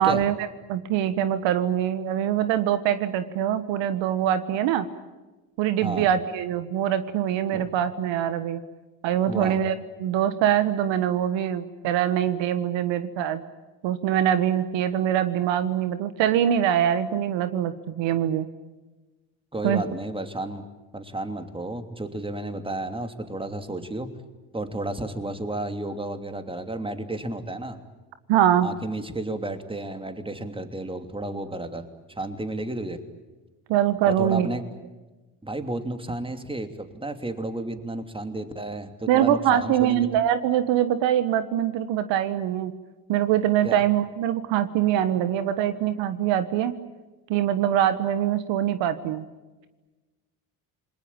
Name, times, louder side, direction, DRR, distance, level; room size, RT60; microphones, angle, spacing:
voice 1, 0.0-4.9 5.6-8.6 9.0-13.4 13.8-18.5 19.6-19.8 28.3-28.7 33.7-34.5 39.1-42.7 43.1-46.7 47.3-49.2, right 10 dB, 65° right, 12 dB, 1.5 m, -23 dB
voice 2, 9.2-9.6 19.5-20.7 20.9-24.1 24.5-27.8 28.6-31.9 32.2-33.0 34.0-34.6 35.4-40.1 43.6-43.8, right 2 dB, 10° right, 8 dB, 2.9 m, -32 dB
28.0 x 21.0 x 8.9 m, 1.2 s
hypercardioid pair, 65°, 47 cm